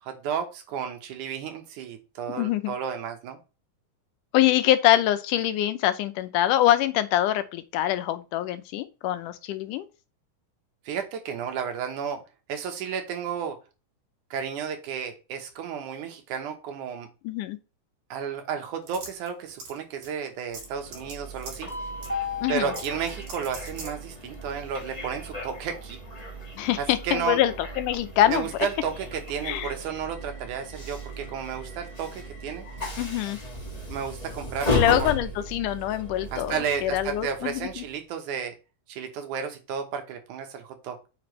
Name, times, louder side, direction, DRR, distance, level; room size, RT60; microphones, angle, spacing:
voice 1, 0.0-3.4 10.9-12.2 12.5-13.6 14.3-17.1 18.1-21.7 22.5-26.0 26.8-27.4 28.3-32.7 33.9-34.8 36.3-38.5 38.9-41.0, right 7 dB, 75° right, 2.6 m, -32 dB
voice 2, 2.3-2.7 4.3-9.9 17.2-17.6 22.4-22.7 26.5-28.5 29.4-29.7 33.0-33.4 34.7-37.8, left 13 dB, 90° left, 2.3 m, -24 dB
sound 1, 18.9-19.8 20.0-20.1 20.5-21.1 21.4-21.7 22.0-22.1 22.7-23.9, right 3 dB, 60° right, 3.1 m, -40 dB
Train, 20.6-37.9, left 1 dB, 20° left, 1.1 m, -35 dB
8.6 x 5.3 x 3.2 m
omnidirectional pair, 3.6 m